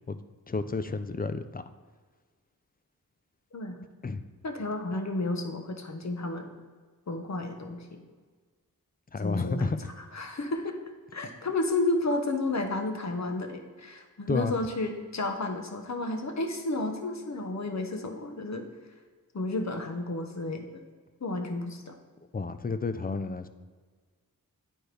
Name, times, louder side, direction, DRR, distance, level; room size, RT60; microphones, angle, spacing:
voice 1, 0.1-1.6 4.0-4.2 9.1-9.8 14.3-14.5 22.3-23.5, left 4 dB, 25° left, 10 dB, 0.4 m, -31 dB
voice 2, 4.4-6.5 7.1-8.0 9.2-9.7 10.1-10.8 11.1-18.7 19.3-20.8 21.2-21.9, left 2 dB, 50° left, 5 dB, 0.9 m, -32 dB
9.3 x 4.4 x 3.3 m, 1.5 s
cardioid pair, 40°, 36 cm